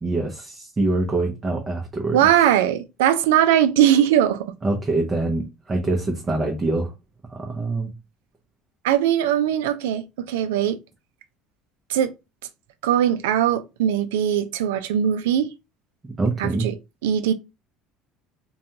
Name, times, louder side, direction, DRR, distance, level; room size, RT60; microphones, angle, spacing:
voice 1, 0.0-2.2 4.6-6.9 7.3-7.9 16.2-16.7, right 2 dB, 25° right, 0.7 m, -24 dB
voice 2, 2.1-4.5 8.8-10.8 11.9-12.1 12.8-15.5 16.4-16.7 17.0-17.3, right 10 dB, 85° right, 0.3 m, -20 dB
2.5 x 2.2 x 2.8 m
supercardioid pair, 85°, 0 cm